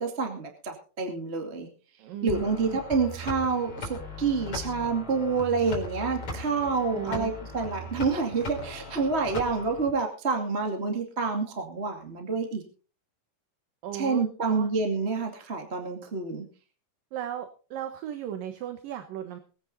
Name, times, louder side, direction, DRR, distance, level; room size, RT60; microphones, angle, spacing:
voice 1, 0.0-1.7 2.2-12.6 13.9-16.4, right 4 dB, 20° right, 3 dB, 1.8 m, -28 dB
voice 2, 2.0-2.8 6.9-7.4 13.8-14.7 17.1-19.4, right 10 dB, 65° right, 8 dB, 2.8 m, -36 dB
sound 1, 2.3-9.9, left 1 dB, 35° left, 4.8 m, -39 dB
21.5 x 9.7 x 4.1 m, 0.37 s
omnidirectional pair, 4.5 m